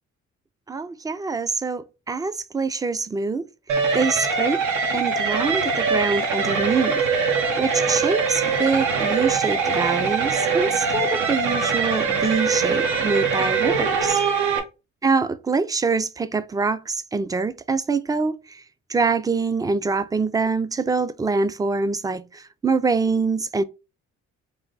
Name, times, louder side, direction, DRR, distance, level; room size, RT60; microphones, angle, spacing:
voice 1, 0.7-3.4 3.9-4.6 4.9-7.0 7.6-14.2 15.0-18.6 18.9-23.6, right 4 dB, 15° right, 0.3 m, -24 dB
sound 1, 3.7-14.6, right 5 dB, 85° right, 0.9 m, -22 dB
3.4 x 2.6 x 3.9 m
cardioid pair, 90°, 30 cm